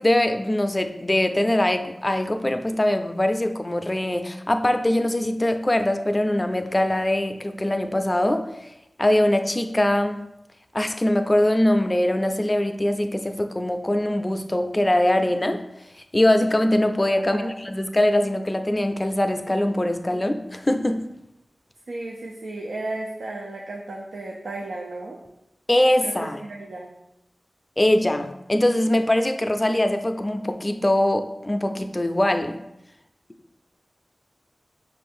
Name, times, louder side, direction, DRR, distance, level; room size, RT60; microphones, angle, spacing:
voice 1, 0.0-8.7 9.0-10.2 10.7-15.6 16.1-21.1 25.7-26.4 27.8-32.6, left 1 dB, 25° left, 7 dB, 0.4 m, -22 dB
voice 2, 17.2-17.5 21.9-25.2 26.0-26.9, right 2 dB, 85° right, -1 dB, 0.4 m, -34 dB
5.4 x 2.6 x 3.5 m, 0.88 s
cardioid pair, 45°, 0 cm